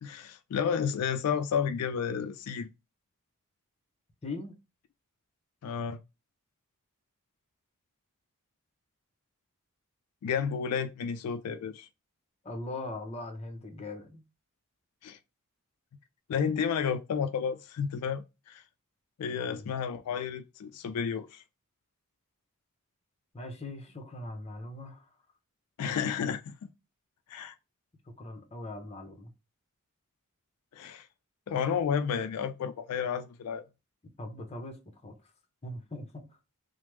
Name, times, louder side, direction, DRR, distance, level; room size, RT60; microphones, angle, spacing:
voice 1, 0.0-2.7 5.6-6.0 10.2-11.9 15.0-15.2 16.3-18.6 19.2-21.4 25.8-26.5 27.3-27.5 30.7-31.1 31.5-33.6, left 7 dB, 90° left, 0.3 m, -31 dB
voice 2, 4.2-4.6 12.4-14.2 19.3-19.7 23.3-25.1 28.2-29.3 34.2-35.1 35.6-36.3, left 2 dB, 30° left, 0.7 m, -40 dB
3.2 x 2.0 x 3.1 m
head